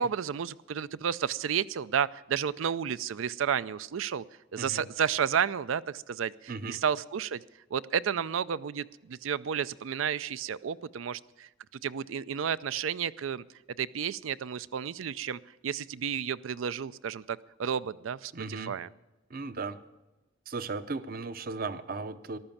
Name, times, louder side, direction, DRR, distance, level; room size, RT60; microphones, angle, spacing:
voice 1, 0.0-4.2 4.5-7.4 7.7-11.5 11.8-13.4 13.8-18.9, right 7 dB, 85° right, 18 dB, 0.4 m, -32 dB
voice 2, 4.6-4.9 6.5-6.8 18.3-18.7 19.3-19.8 20.5-22.4, right 4 dB, 50° right, 13 dB, 0.7 m, -36 dB
14.5 x 12.0 x 7.1 m, 1.0 s
head